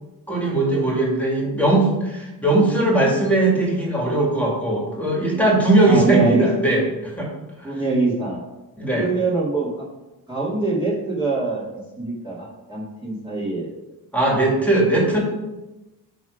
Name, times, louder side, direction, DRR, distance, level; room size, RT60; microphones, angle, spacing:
voice 1, 0.3-7.3 7.6-7.7 8.8-9.1 14.1-15.2, right 2 dB, 5° left, -3 dB, 2.4 m, -19 dB
voice 2, 5.8-6.5 6.8-6.9 7.6-8.4 8.9-9.8 10.3-13.7, right 3 dB, 10° right, -9 dB, 2.2 m, -24 dB
10.5 x 3.5 x 4.9 m, 1.0 s
cardioid pair, 100°, 38 cm